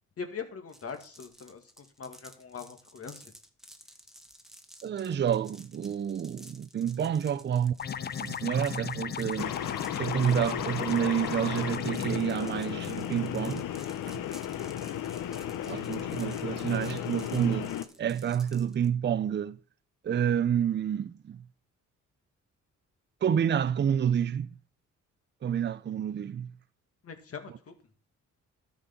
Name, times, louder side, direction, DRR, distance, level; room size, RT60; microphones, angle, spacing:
voice 1, 0.2-3.3 27.0-27.7, left 6 dB, 50° left, 2.1 m, -42 dB
sound 1, 0.7-18.9, equal, ahead, 1.2 m, -53 dB
voice 2, 4.8-9.6 9.9-13.6 14.1-14.2 15.7-17.7 18.0-19.6 20.0-21.4 23.2-24.5 25.4-26.5, right 8 dB, 35° right, 0.5 m, -29 dB
sound 2, 7.8-12.2, left 8 dB, 35° left, 0.4 m, -36 dB
sound 3, 9.4-17.8, left 11 dB, 90° left, 0.9 m, -34 dB
12.5 x 5.2 x 5.9 m
cardioid pair, 100°, 31 cm